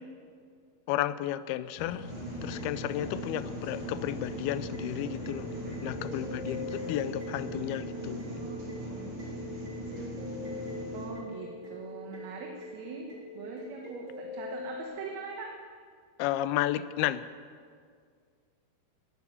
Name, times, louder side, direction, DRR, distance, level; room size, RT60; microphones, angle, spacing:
voice 1, 0.9-2.1 2.4-5.5 5.8-8.2 16.2-17.3, left 13 dB, 85° left, 15 dB, 2.5 m, -32 dB
sound 1, 1.8-8.9, left 3 dB, 60° left, 4.6 m, -46 dB
sound 2, 2.0-11.1, right 1 dB, 50° right, 5.4 m, -40 dB
sound 3, 2.5-14.8, left 2 dB, 30° right, 4.0 m, -43 dB
voice 2, 8.1-9.3 10.9-13.1 13.4-15.5, right 4 dB, 75° right, 1 dB, 3.0 m, -42 dB
17.5 x 11.0 x 7.1 m, 2.1 s
omnidirectional pair, 4.5 m